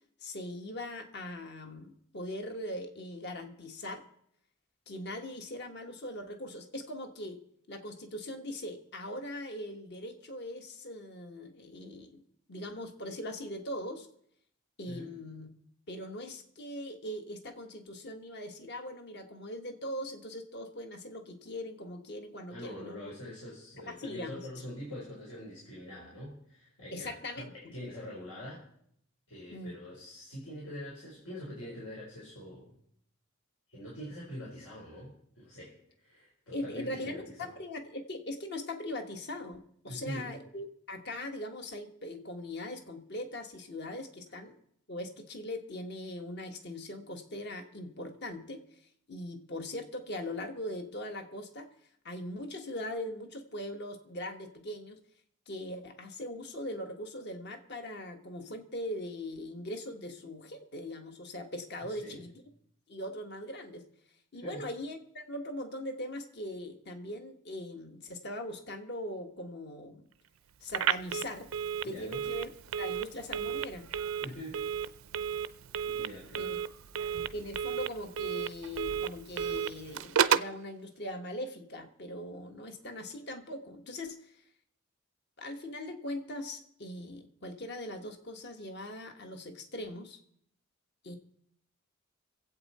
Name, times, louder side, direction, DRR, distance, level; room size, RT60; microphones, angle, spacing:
voice 1, 0.2-4.0 4.9-7.4 7.7-12.2 12.5-14.1 14.8-15.5 15.9-23.1 23.9-24.5 26.9-27.7 29.5-29.7 36.5-44.6 44.9-48.7 49.1-51.7 52.0-55.0 55.5-62.3 62.9-63.8 64.3-70.1 70.6-71.5 71.8-73.9 76.4-76.6 77.3-84.4 85.4-90.2 91.0-91.2, left 1 dB, 55° left, 5 dB, 1.4 m, -40 dB
voice 2, 22.5-28.6 29.3-32.7 33.7-37.5 39.8-40.3 61.9-62.2 64.3-64.7 71.8-72.2 74.2-74.6 75.9-76.5, equal, 85° left, -5 dB, 4.2 m, -44 dB
Telephone, 70.7-80.6, right 8 dB, 75° right, 0.5 m, -33 dB
25.0 x 8.4 x 4.2 m, 0.69 s
head